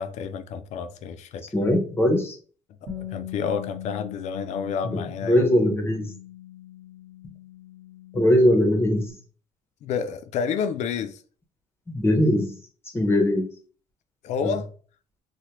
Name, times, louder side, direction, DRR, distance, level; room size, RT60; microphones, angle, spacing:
voice 1, 0.0-1.5 3.0-5.4 9.8-11.2 14.2-14.7, left 6 dB, 65° left, 0.4 m, -29 dB
voice 2, 1.5-2.3 5.3-6.1 8.1-9.1 11.9-12.6 12.9-13.5 14.4-14.5, left 1 dB, 20° left, 0.6 m, -20 dB
Bass guitar, 2.9-9.1, left 12 dB, 60° right, 1.1 m, -40 dB
3.2 x 2.1 x 2.9 m
cardioid pair, 130°, 13 cm